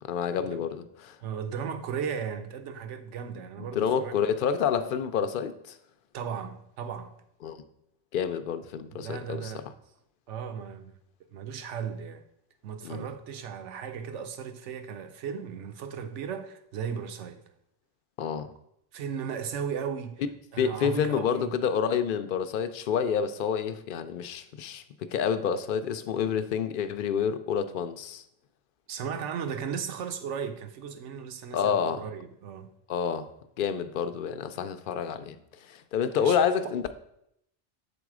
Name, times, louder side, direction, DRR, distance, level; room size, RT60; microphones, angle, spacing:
voice 1, 0.0-1.2 3.7-5.8 7.4-7.6 8.1-9.6 12.8-13.1 18.2-18.5 20.6-28.2 31.5-32.0 32.9-33.3 33.6-36.9, left 7 dB, 60° left, 0.6 m, -28 dB
voice 2, 1.2-4.1 6.1-7.1 8.9-9.7 10.3-11.0 11.3-12.2 12.6-17.4 18.9-20.2 20.5-21.5 28.9-32.7 36.2-36.4, right 7 dB, 85° right, 1.0 m, -36 dB
7.2 x 4.0 x 4.8 m
omnidirectional pair, 1.2 m